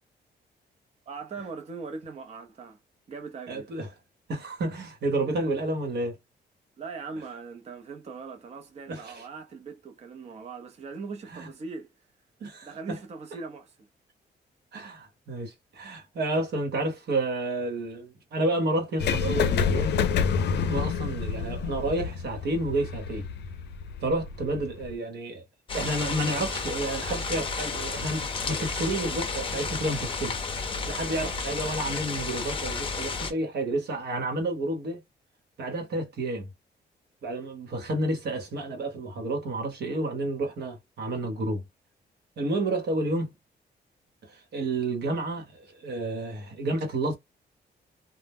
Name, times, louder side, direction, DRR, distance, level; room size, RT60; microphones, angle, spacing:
voice 1, 1.1-2.8 3.1-3.7 6.8-11.9 12.6-13.7, right 4 dB, 35° right, 0.6 m, -40 dB
voice 2, 3.5-3.9 4.3-6.2 8.9-9.3 11.3-11.5 12.4-13.0 14.7-20.0 20.7-23.3 24.0-25.4 25.7-30.4 30.9-35.0 35.6-36.5 37.2-41.6 42.4-43.4 44.3-47.2, right 2 dB, 70° right, 0.9 m, -30 dB
sound 1, 19.0-24.9, left 6 dB, 70° left, 0.5 m, -28 dB
sound 2, 25.7-33.3, left 4 dB, 30° left, 0.6 m, -32 dB
2.1 x 2.0 x 3.4 m
cardioid pair, 115°, 18 cm